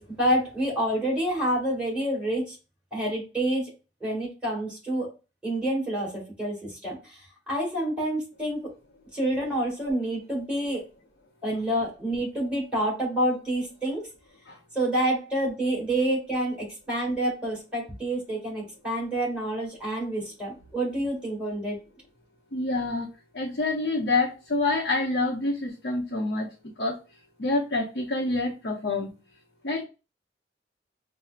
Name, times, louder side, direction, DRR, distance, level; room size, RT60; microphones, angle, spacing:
voice 1, 0.0-2.6 2.9-3.7 4.0-5.1 5.4-8.6 9.1-10.8 11.4-14.0 14.7-21.8, right 1 dB, 5° right, -5 dB, 2.0 m, -28 dB
voice 2, 22.5-23.1 23.3-26.5 26.8-27.0 27.4-29.1 29.6-29.8, left 2 dB, 75° left, -2 dB, 0.7 m, -27 dB
5.6 x 2.1 x 2.4 m, 0.31 s
head